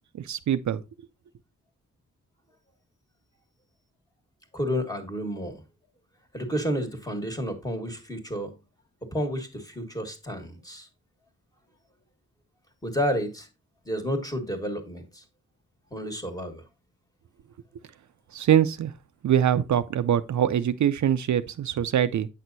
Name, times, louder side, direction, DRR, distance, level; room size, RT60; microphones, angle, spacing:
voice 1, 0.1-0.8 18.3-18.9 19.2-22.3, right 10 dB, 65° right, 0.5 m, -23 dB
voice 2, 4.5-5.6 6.3-8.5 9.0-10.9 12.8-13.5 13.8-15.2 15.9-16.6, equal, 10° left, 1.5 m, -31 dB
8.3 x 6.1 x 2.6 m
wide cardioid pair, 140°, 31 cm